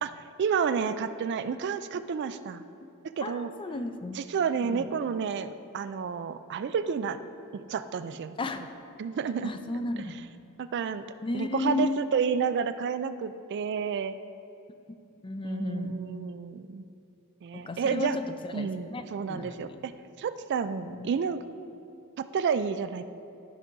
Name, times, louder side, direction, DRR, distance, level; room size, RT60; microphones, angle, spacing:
voice 1, 0.0-2.6 3.0-3.5 4.1-7.2 7.5-8.4 9.0-9.5 10.6-11.1 11.3-14.2 15.4-16.8 17.4-18.2 18.5-19.9 20.2-21.6 22.2-23.0, right 6 dB, 50° right, 12 dB, 0.3 m, -30 dB
voice 2, 3.2-4.2 4.6-4.9 8.4-8.6 9.4-10.2 11.2-12.1 15.2-16.1 17.5-19.8 20.9-21.1, left 2 dB, 25° left, 8 dB, 0.5 m, -34 dB
12.5 x 4.8 x 5.3 m, 2.7 s
head